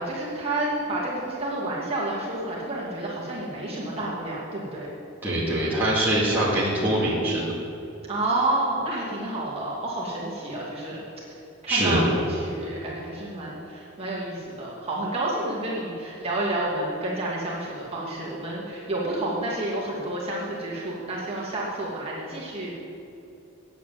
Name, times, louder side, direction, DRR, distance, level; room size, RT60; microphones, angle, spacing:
voice 1, 0.0-4.9 8.1-11.0 11.6-22.7, right 2 dB, 30° right, -7 dB, 2.5 m, -30 dB
voice 2, 5.2-7.5 11.7-12.0, right 1 dB, 10° right, -9 dB, 2.5 m, -23 dB
9.3 x 8.5 x 7.6 m, 2.8 s
head